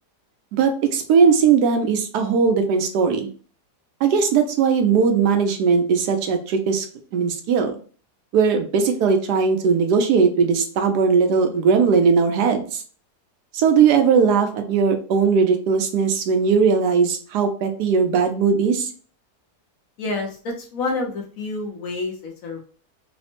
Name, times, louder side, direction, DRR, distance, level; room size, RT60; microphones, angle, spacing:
voice 1, 0.6-3.3 4.0-6.8 7.1-7.7 8.3-12.8 13.5-18.9, right 5 dB, 90° right, 5 dB, 1.2 m, -19 dB
voice 2, 20.0-22.6, left 3 dB, 65° left, 1 dB, 1.0 m, -28 dB
3.3 x 2.1 x 2.8 m, 0.41 s
omnidirectional pair, 1.7 m